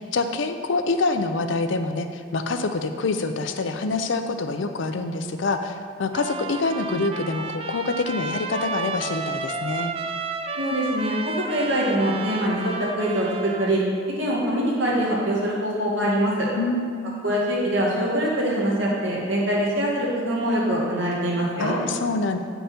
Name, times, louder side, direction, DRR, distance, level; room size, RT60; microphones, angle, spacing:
voice 1, 0.0-9.9 16.6-17.1 21.6-22.4, left 3 dB, 75° left, 8 dB, 0.5 m, -26 dB
Trumpet, 6.1-13.7, right 4 dB, 30° right, 0.3 m, -32 dB
voice 2, 10.6-13.8 14.2-16.5 17.2-21.8, right 1 dB, 75° right, -5 dB, 2.0 m, -24 dB
8.7 x 5.4 x 4.3 m, 2.1 s
head